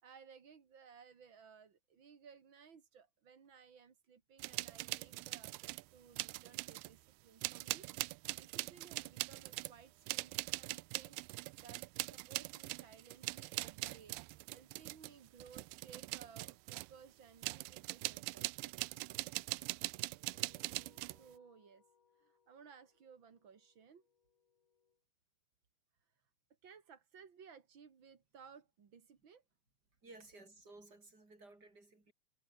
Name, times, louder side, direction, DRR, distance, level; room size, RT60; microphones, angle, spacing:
voice 1, 0.0-7.9 8.4-11.2 11.6-14.2 14.5-19.3 20.8-21.8 22.1-24.0 26.6-29.4, right 6 dB, 40° right, 1.9 m, -59 dB
sound 1, 4.4-5.9 6.2-7.0 7.4-17.0 17.4-21.2, right 23 dB, 85° right, 2.9 m, -42 dB
sound 2, 20.2-25.0, left 6 dB, 85° left, 7.2 m, -72 dB
voice 2, 30.0-32.1, right 2 dB, 20° right, 6.5 m, -57 dB
omnidirectional pair, 5.1 m